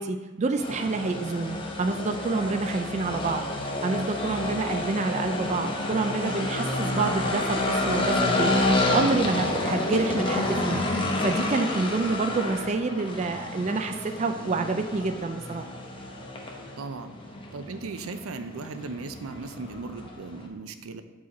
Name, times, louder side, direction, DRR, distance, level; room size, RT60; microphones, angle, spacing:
voice 1, 0.0-15.7, right 3 dB, 35° right, 6 dB, 0.3 m, -28 dB
sound 1, 0.6-20.5, left 2 dB, 25° left, 0.8 m, -29 dB
voice 2, 16.8-17.1 17.5-21.0, right 4 dB, 90° right, 9 dB, 0.5 m, -37 dB
7.5 x 4.6 x 4.2 m, 1.2 s
head